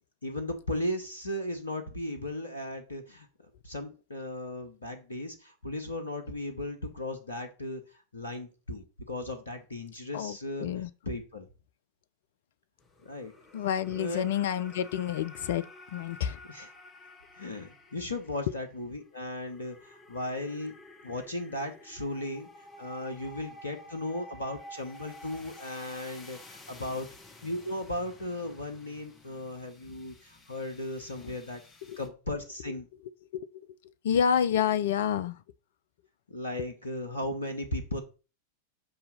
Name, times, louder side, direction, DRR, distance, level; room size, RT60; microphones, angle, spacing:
voice 1, 0.2-3.3 3.6-7.8 8.1-10.7 11.1-11.5 13.0-13.3 13.9-14.3 16.5-16.7 17.3-20.7 21.0-22.5 22.8-27.1 27.4-31.6 32.0-32.9 36.3-38.0, left 1 dB, 75° left, 0.8 m, -36 dB
voice 2, 10.1-10.9 13.5-15.7 15.9-16.4 31.2-31.4 31.9-32.0 33.3-33.7 34.0-35.4, left 8 dB, 55° left, 0.4 m, -29 dB
sound 1, 12.8-32.1, left 1 dB, 25° left, 1.1 m, -51 dB
6.6 x 2.8 x 5.4 m
figure-of-eight pair, 90°, 0 cm